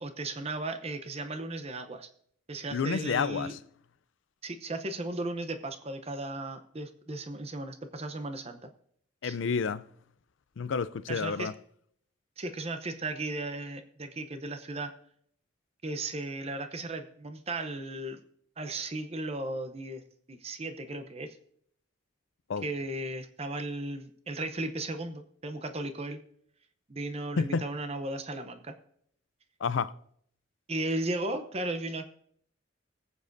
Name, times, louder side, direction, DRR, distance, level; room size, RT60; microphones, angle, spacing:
voice 1, 0.0-2.1 2.5-3.6 4.4-8.7 9.2-9.4 11.1-11.5 12.4-14.9 15.8-18.2 18.6-20.0 20.3-21.4 22.6-26.2 26.9-28.7 30.7-32.1, right 2 dB, 30° right, 0.7 m, -36 dB
voice 2, 2.7-3.6 9.2-9.8 10.6-11.5 22.5-22.7 27.4-27.7 29.6-29.9, left 5 dB, 70° left, 0.4 m, -29 dB
20.0 x 7.4 x 2.6 m
head